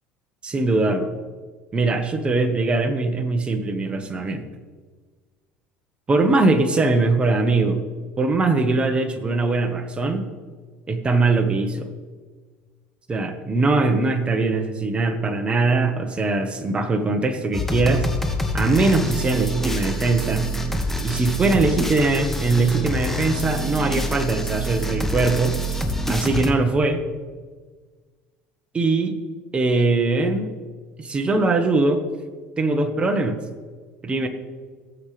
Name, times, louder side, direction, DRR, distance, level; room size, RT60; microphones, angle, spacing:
voice 1, 0.4-1.1 1.7-4.4 6.1-7.8 8.2-10.3 10.9-11.9 13.1-18.1 18.5-20.5 21.0-25.6 26.1-27.0 28.7-29.2 29.5-30.5 31.0-32.0 32.6-33.4 34.0-34.3, right 3 dB, 25° right, 6 dB, 1.4 m, -21 dB
sound 1, 17.5-26.5, equal, 5° left, 1.3 m, -26 dB
17.0 x 7.5 x 3.4 m, 1.4 s
supercardioid pair, 100°, 4 cm